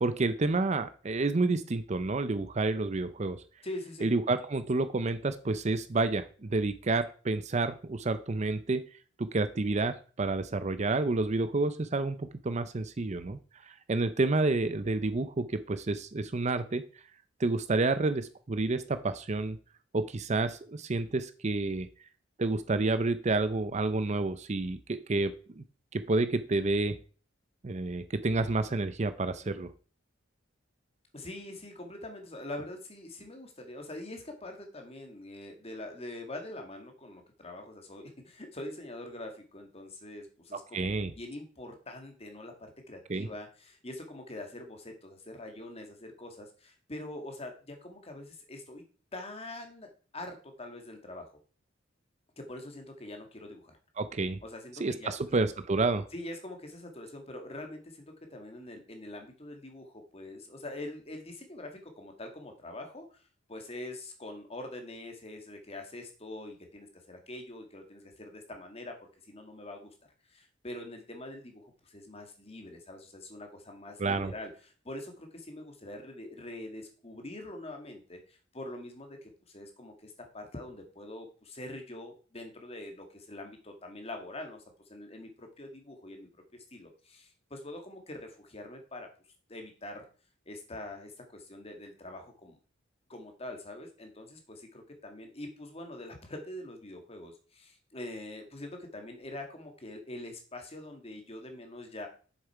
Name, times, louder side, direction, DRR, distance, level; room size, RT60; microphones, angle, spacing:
voice 1, 0.0-3.4 4.0-8.8 9.2-13.4 13.7-16.8 17.4-19.6 19.9-21.9 22.4-25.6 25.9-27.0 27.6-29.7 40.5-41.1 43.1-43.3 54.0-54.4 54.8-56.0 74.0-74.3, right 3 dB, 35° right, 12 dB, 0.5 m, -29 dB
voice 2, 3.6-4.1 31.1-48.8 49.1-51.3 52.4-53.8 54.4-55.2 56.1-63.2 63.5-69.9 70.3-84.6 84.9-86.3 86.7-89.1 89.5-90.1 90.5-92.6 93.1-102.1, left 1 dB, 30° left, 4 dB, 1.7 m, -44 dB
7.4 x 6.7 x 4.6 m, 0.39 s
head